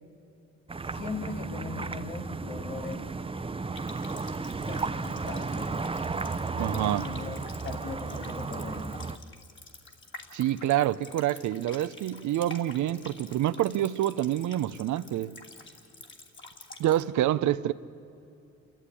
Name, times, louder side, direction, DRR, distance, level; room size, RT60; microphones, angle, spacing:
sound 1, 0.7-9.2, right 4 dB, 20° right, 0.8 m, -34 dB
voice 1, 0.9-3.0 4.7-5.8 6.6-9.0, left 4 dB, 75° left, 2.8 m, -40 dB
Water tap faucet, 3.8-17.0, left 3 dB, 40° left, 2.9 m, -49 dB
voice 2, 6.5-7.0 10.3-15.3 16.8-17.7, right 13 dB, 75° right, 0.7 m, -27 dB
28.0 x 14.0 x 9.9 m
cardioid pair, 90°, 30 cm